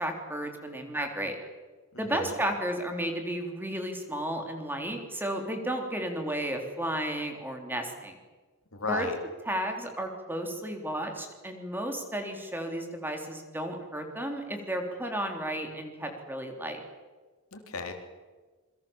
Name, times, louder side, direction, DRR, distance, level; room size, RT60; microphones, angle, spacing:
voice 1, 0.0-1.4 2.0-8.2 8.9-9.1 9.5-16.8, right 1 dB, 10° right, 3 dB, 3.5 m, -33 dB
voice 2, 1.9-2.3 8.7-9.2 17.5-17.9, left 3 dB, 90° left, 4 dB, 3.7 m, -34 dB
27.5 x 23.0 x 7.3 m, 1.4 s
head